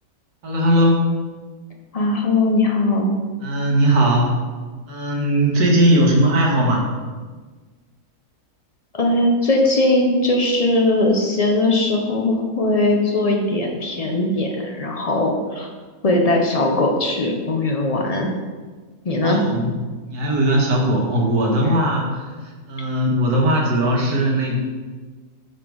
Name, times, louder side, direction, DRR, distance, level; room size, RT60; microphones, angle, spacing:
voice 1, 0.4-1.0 3.4-4.4 4.9-6.8 19.2-19.7 20.1-24.6, right 1 dB, 75° right, -1 dB, 1.8 m, -19 dB
voice 2, 1.9-3.1 8.9-15.7 16.0-18.3 19.0-19.4, left 2 dB, 45° left, 1 dB, 0.5 m, -19 dB
5.9 x 5.4 x 4.6 m, 1.4 s
omnidirectional pair, 1.7 m